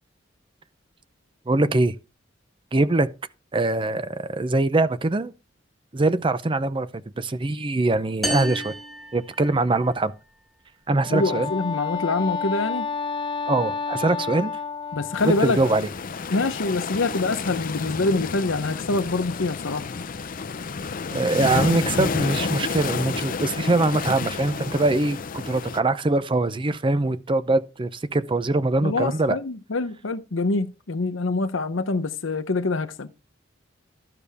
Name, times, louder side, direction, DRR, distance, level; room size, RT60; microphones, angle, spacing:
voice 1, 1.5-1.9 2.7-3.1 3.5-5.3 5.9-6.9 7.2-8.7 9.1-10.1 10.9-11.5 13.5-14.5 15.2-15.9 21.1-29.4, right 2 dB, 25° right, 0.6 m, -23 dB
sound 1, 8.2-10.0, equal, ahead, 1.8 m, -32 dB
Wind instrument woodwind instrument, 10.9-15.6, left 5 dB, 25° left, 1.1 m, -30 dB
voice 2, 11.1-12.9 14.9-15.8 16.3-19.8 28.8-33.1, left 3 dB, 80° left, 0.8 m, -25 dB
sound 2, 15.2-25.8, left 4 dB, 45° left, 0.6 m, -30 dB
12.0 x 6.8 x 3.5 m
head